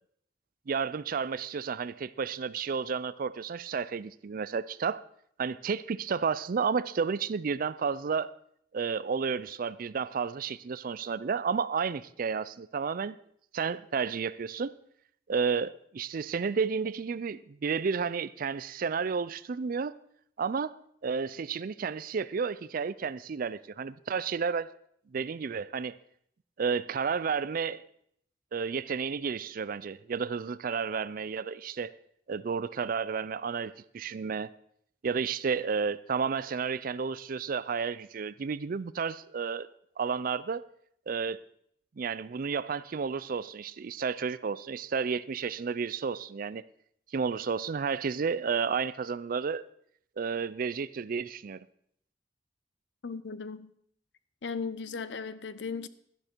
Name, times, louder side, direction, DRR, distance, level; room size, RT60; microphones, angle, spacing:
voice 1, 0.7-5.0 5.4-8.3 8.7-13.2 13.5-14.7 15.3-19.9 20.4-20.7 21.0-24.7 25.1-26.0 26.6-27.8 28.5-31.9 32.3-34.5 35.0-39.7 40.0-40.6 41.1-41.4 42.0-46.6 47.1-49.6 50.2-51.6, right 5 dB, 50° right, 0.4 m, -31 dB
voice 2, 53.0-53.7 54.4-55.9, left 5 dB, 70° left, 0.6 m, -36 dB
12.0 x 11.5 x 4.5 m
head